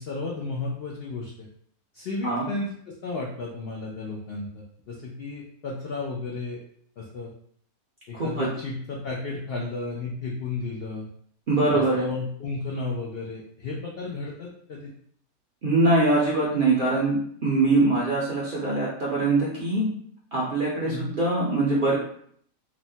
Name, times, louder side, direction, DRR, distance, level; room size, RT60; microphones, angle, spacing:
voice 1, 0.0-1.5 1.9-6.6 7.0-7.3 8.1-11.1 11.7-14.9 20.8-21.1, left 3 dB, 85° left, -3 dB, 0.5 m, -33 dB
voice 2, 8.1-8.5 11.5-12.1 15.6-17.2 17.4-19.9 20.3-21.9, right 2 dB, 60° right, -6 dB, 0.5 m, -23 dB
3.0 x 2.1 x 2.7 m, 0.63 s
omnidirectional pair, 1.6 m